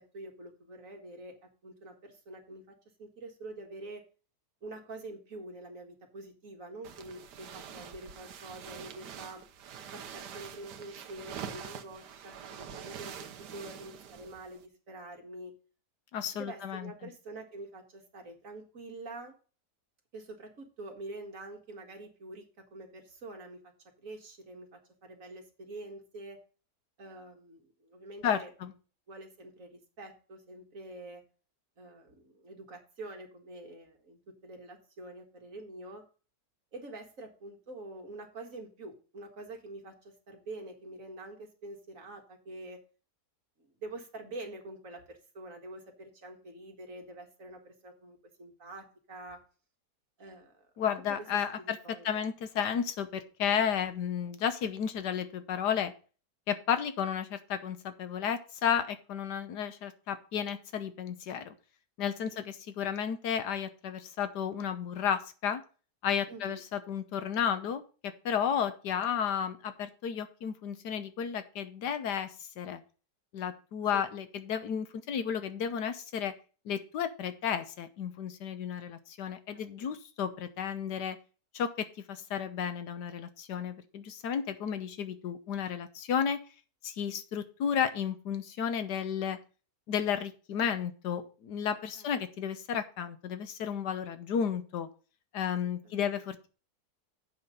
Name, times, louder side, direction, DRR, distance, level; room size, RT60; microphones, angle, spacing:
voice 1, 0.0-4.0 4.6-9.4 9.9-15.5 16.3-19.3 20.1-23.7 24.0-26.4 27.0-28.5 29.1-31.2 31.8-36.0 36.7-42.8 43.6-49.4 50.2-50.7 51.6-52.2 62.3-62.4 66.3-66.6 73.9-74.1 79.5-79.9 92.0-92.1 95.8-96.2, right 2 dB, 50° right, 3 dB, 2.1 m, -46 dB
sound 1, 6.8-14.7, right 8 dB, 80° right, 1.5 m, -45 dB
voice 2, 16.1-16.9 28.2-28.7 50.8-51.8 52.0-55.9 56.5-61.5 62.0-65.6 66.0-72.3 72.6-72.8 73.3-76.3 76.6-81.2 81.5-86.4 86.8-89.4 89.9-94.9 95.3-96.5, left 8 dB, 75° left, 11 dB, 1.5 m, -33 dB
8.0 x 5.7 x 6.5 m, 0.36 s
omnidirectional pair, 1.8 m